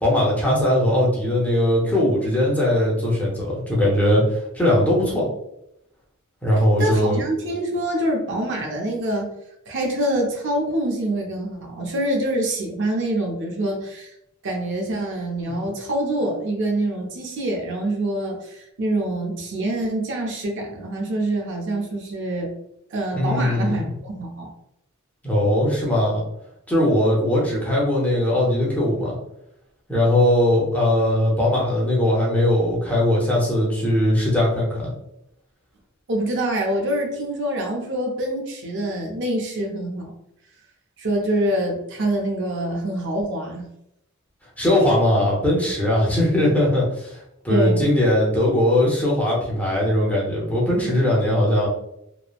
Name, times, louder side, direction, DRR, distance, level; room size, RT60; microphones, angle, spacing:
voice 1, 0.0-5.3 6.4-7.2 15.5-15.6 23.1-23.9 25.2-26.2 26.7-29.2 29.9-34.9 44.6-47.2 47.4-51.7, left 1 dB, 5° left, -5 dB, 0.7 m, -20 dB
voice 2, 6.8-9.3 9.7-14.1 14.4-22.5 22.9-24.5 36.1-40.1 41.0-43.7 47.5-47.9, right 1 dB, 60° right, 1 dB, 0.5 m, -25 dB
3.0 x 2.0 x 2.4 m, 0.80 s
head